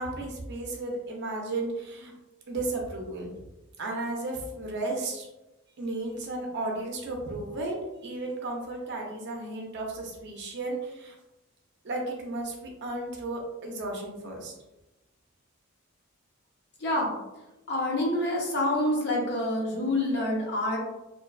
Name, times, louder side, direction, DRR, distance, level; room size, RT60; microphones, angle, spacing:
voice 1, 0.0-2.1 2.5-3.3 3.8-5.3 5.8-7.8 8.0-11.2 11.8-14.5, right 2 dB, 50° right, 0 dB, 0.5 m, -34 dB
voice 2, 16.8-17.1 17.7-20.8, left 1 dB, 50° left, -2 dB, 0.6 m, -27 dB
2.5 x 2.2 x 2.3 m, 0.99 s
head